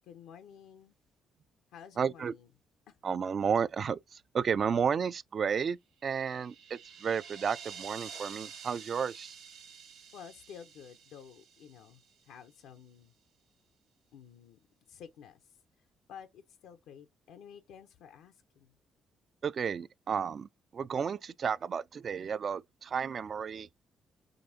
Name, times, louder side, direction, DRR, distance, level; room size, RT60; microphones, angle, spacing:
voice 1, 0.0-0.9 1.7-2.5 2.9-3.0 10.1-13.1 14.1-14.6 14.9-18.8, left 8 dB, 90° left, 0.6 m, -52 dB
voice 2, 2.0-2.3 3.0-9.4 19.4-23.7, right 6 dB, 50° right, 0.3 m, -32 dB
sound 1, 6.1-12.3, right 7 dB, 85° right, 1.2 m, -49 dB
5.1 x 3.5 x 2.7 m
cardioid pair, 90°, 0 cm